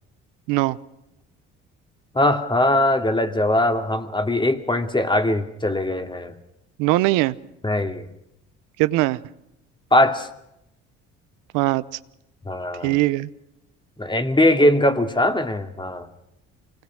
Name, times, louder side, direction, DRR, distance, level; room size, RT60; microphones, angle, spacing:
voice 1, 0.5-0.8 6.8-7.4 8.8-9.2 11.5-11.8 12.8-13.3, right 18 dB, 90° right, 15 dB, 0.7 m, -20 dB
voice 2, 2.1-6.3 7.6-8.1 9.9-10.3 12.5-13.0 14.0-16.1, left 1 dB, 15° left, 7 dB, 2.4 m, -21 dB
25.5 x 19.5 x 6.4 m, 0.84 s
supercardioid pair, 70°, 31 cm